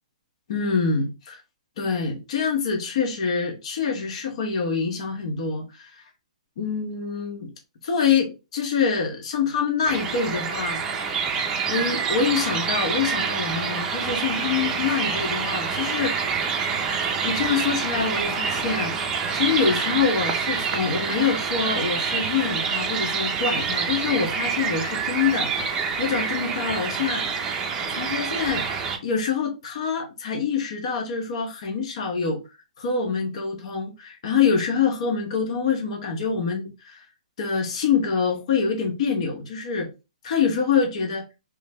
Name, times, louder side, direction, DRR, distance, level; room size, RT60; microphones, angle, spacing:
voice 1, 0.5-1.4 1.8-6.0 6.6-7.5 7.8-11.1 11.7-16.3 17.2-19.0 19.3-27.2 27.9-28.7 29.0-32.4 32.8-37.1 37.4-39.9 40.2-41.2, left 6 dB, 55° left, 0.9 m, -25 dB
sound 1, 9.9-29.0, right 6 dB, 15° right, 0.5 m, -27 dB
3.2 x 2.0 x 3.4 m
hypercardioid pair, 155°, 4 cm